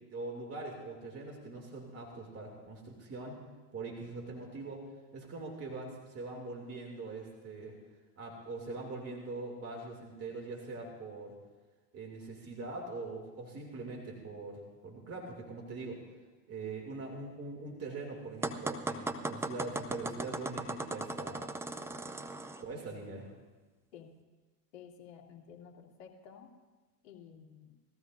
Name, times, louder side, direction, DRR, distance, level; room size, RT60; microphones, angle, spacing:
voice 1, 0.0-3.4 3.7-4.8 5.1-7.7 8.2-11.3 11.9-16.0 16.5-21.5 22.6-23.3, right 3 dB, 30° right, 0 dB, 2.8 m, -42 dB
sound 1, 18.4-22.6, right 2 dB, 5° right, 0.5 m, -37 dB
voice 2, 24.7-26.5 27.0-27.8, left 7 dB, 55° left, -1 dB, 2.7 m, -52 dB
20.5 x 14.5 x 2.7 m, 1.3 s
hypercardioid pair, 90°, 49 cm